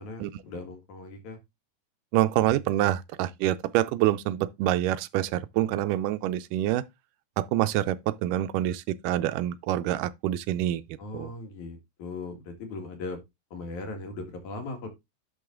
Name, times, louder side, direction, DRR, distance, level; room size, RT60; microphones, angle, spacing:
voice 1, 0.0-1.4 11.0-13.2 13.5-14.9, left 3 dB, 65° left, 3.1 m, -38 dB
voice 2, 2.1-6.8 7.4-10.8 11.1-11.3, right 13 dB, 85° right, 2.2 m, -26 dB
11.0 x 4.0 x 3.7 m
omnidirectional pair, 3.7 m